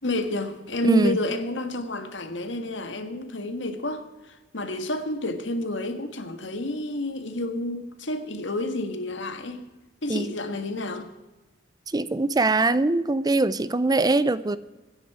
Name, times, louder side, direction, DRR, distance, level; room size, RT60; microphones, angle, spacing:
voice 1, 0.0-9.7 10.0-11.1, left 1 dB, 75° left, 1.8 m, -30 dB
voice 2, 0.8-1.2 10.1-10.3 11.9-14.6, right 2 dB, 20° right, 0.5 m, -22 dB
24.0 x 10.0 x 4.9 m
head